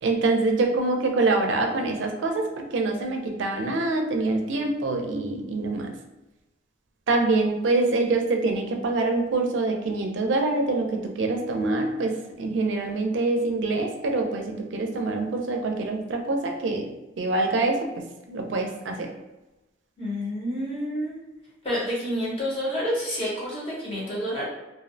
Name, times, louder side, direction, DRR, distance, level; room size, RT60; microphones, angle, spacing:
voice 1, 0.0-5.9 7.1-16.9 17.2-17.9 18.3-19.1, right 3 dB, 85° right, 2 dB, 0.4 m, -25 dB
voice 2, 20.0-21.1 21.6-24.4, equal, 30° left, -6 dB, 0.8 m, -29 dB
2.5 x 2.0 x 2.6 m, 1.0 s
head